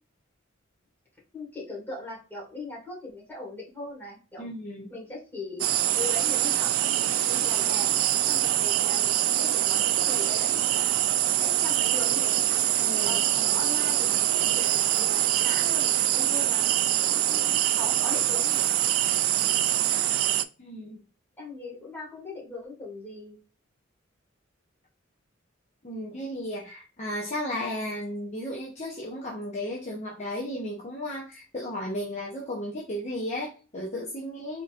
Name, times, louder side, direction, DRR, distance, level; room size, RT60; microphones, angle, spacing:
voice 1, 1.3-4.5 4.9-5.7 5.9-7.9 8.3-11.0 11.3-12.4 13.0-18.7 21.4-23.4, left 2 dB, 10° left, -4 dB, 2.3 m, -40 dB
voice 2, 4.4-4.9 12.8-13.6 20.6-21.0 25.8-34.6, left 1 dB, 35° left, -3 dB, 0.8 m, -34 dB
sound 1, 5.6-20.4, right 12 dB, 90° right, 0.4 m, -24 dB
4.1 x 3.9 x 2.5 m, 0.36 s
head